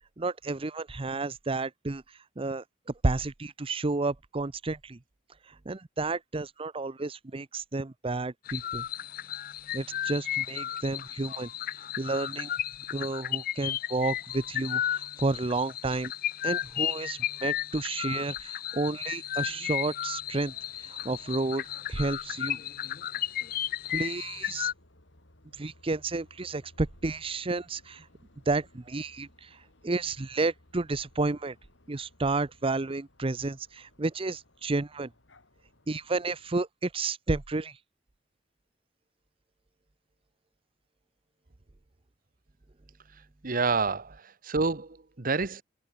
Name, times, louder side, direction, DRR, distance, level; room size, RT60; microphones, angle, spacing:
voice 1, 0.2-2.6 3.0-5.0 5.4-8.9 9.7-11.5 12.0-12.5 12.9-16.1 16.4-21.6 21.9-22.6 23.9-24.7 25.5-28.1 28.5-31.6 31.9-35.1 35.9-37.8, right 3 dB, 30° right, 0.7 m, -31 dB
sound 1, 8.5-24.7, left 11 dB, 50° left, 0.5 m, -34 dB
sound 2, 20.1-36.6, left 1 dB, 85° left, 4.2 m, -61 dB
voice 2, 43.4-45.6, right 4 dB, 50° right, 1.1 m, -28 dB
head